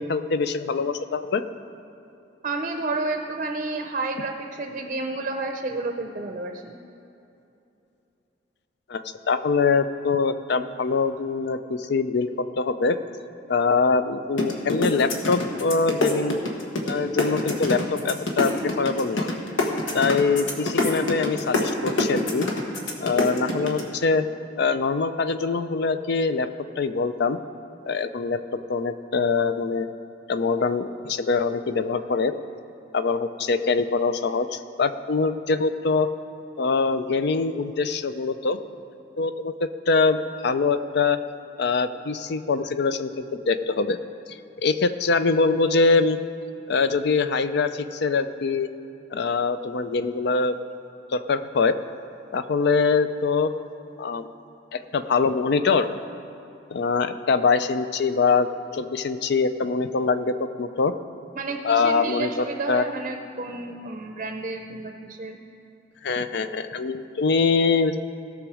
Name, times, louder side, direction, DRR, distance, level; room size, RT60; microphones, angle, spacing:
voice 1, 0.0-1.4 8.9-12.3 12.6-13.0 13.5-16.4 16.9-19.3 19.9-22.5 23.0-24.2 24.6-26.5 26.8-27.4 27.8-28.4 28.7-29.9 30.3-32.3 32.9-36.1 36.6-38.6 39.2-41.2 41.6-44.0 44.3-46.2 46.7-48.7 49.1-50.6 51.1-51.8 52.3-53.5 54.0-54.3 54.7-55.9 56.7-60.9 61.6-62.8 66.0-68.0, left 4 dB, 60° left, 11 dB, 0.5 m, -23 dB
voice 2, 2.4-6.7 61.4-65.4, right 3 dB, 40° right, 4 dB, 0.6 m, -30 dB
sound 1, 14.4-16.9 17.2-23.8, left 2 dB, 85° left, 1.3 m, -24 dB
17.0 x 6.2 x 4.9 m, 2.8 s
head